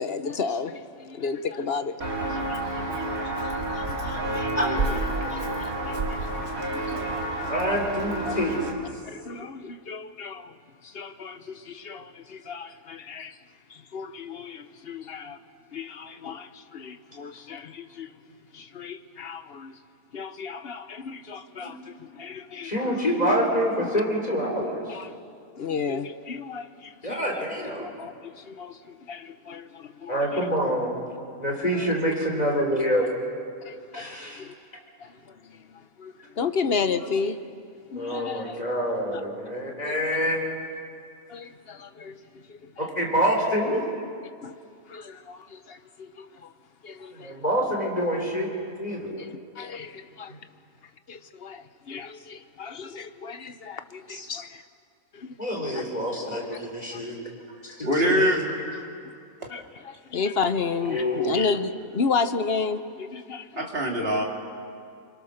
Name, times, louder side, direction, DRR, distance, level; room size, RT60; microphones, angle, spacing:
voice 1, 0.0-4.8 5.3-6.4 6.7-7.6 8.2-8.7 9.1-10.5 10.8-13.4 13.7-15.4 15.7-18.1 18.5-19.7 20.1-22.9 23.8-23.9 24.9-25.1 25.6-27.5 27.8-30.4 31.7-31.9 33.7-34.5 35.0-37.4 37.9-38.6 39.1-39.2 39.8-40.0 41.3-42.9 44.4-44.5 44.9-46.5 46.8-47.4 49.2-50.3 51.1-54.6 55.1-55.3 55.7-55.8 56.3-56.6 56.9-57.0 59.5-63.7, left 5 dB, 50° left, 10 dB, 1.0 m, -33 dB
Walk footsteps, 2.0-8.7, right 2 dB, 85° right, 3.0 m, -29 dB
voice 2, 4.5-5.0 7.5-8.5 21.6-21.7 22.6-24.8 27.0-27.9 30.1-31.0 31.4-33.0 33.9-34.4 36.4-36.5 37.9-40.4 42.8-43.8 47.1-48.5 48.8-49.2 50.3-50.4 54.1-54.3 55.4-57.1 57.6-58.4 60.8-61.3, equal, 30° left, 0 dB, 4.1 m, -26 dB
voice 3, 57.8-58.8 59.4-59.5 63.5-64.2, equal, 45° right, -1 dB, 3.1 m, -24 dB
27.0 x 23.5 x 6.6 m, 2.3 s
omnidirectional pair, 1.5 m